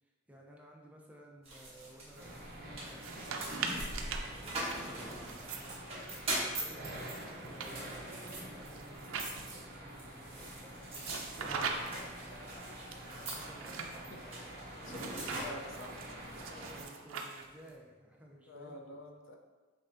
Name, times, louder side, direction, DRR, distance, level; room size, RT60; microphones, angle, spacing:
voice 1, 0.0-3.0 3.5-12.6 13.1-14.7 15.2-15.5 16.7-19.0, equal, 5° right, -1 dB, 0.5 m, -56 dB
sound 1, 1.4-16.4, right 1 dB, 30° right, 1.4 m, -43 dB
sound 2, 2.2-16.8, right 1 dB, 45° right, 0.8 m, -48 dB
sound 3, 2.9-6.4 6.9-9.8 11.0-12.1 12.9-14.0 14.9-17.7, right 5 dB, 80° right, 0.5 m, -42 dB
voice 2, 13.8-14.2 14.8-16.0 16.6-16.7 18.5-19.4, left 2 dB, 65° left, 3 dB, 0.5 m, -48 dB
5.5 x 3.5 x 2.5 m, 1.3 s
head